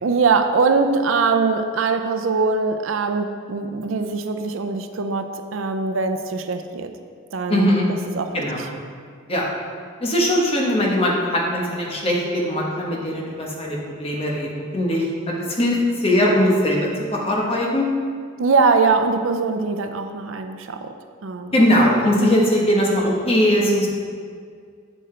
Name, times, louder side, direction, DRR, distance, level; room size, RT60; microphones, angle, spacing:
voice 1, 0.0-6.9 7.3-8.7 18.4-20.9 21.2-21.6 22.0-22.3, right 4 dB, 80° right, 7 dB, 0.5 m, -22 dB
voice 2, 7.5-7.9 8.3-8.6 9.3-9.4 10.0-17.9 21.5-23.9, equal, 30° left, -2 dB, 1.2 m, -20 dB
7.8 x 7.4 x 3.3 m, 2.1 s
head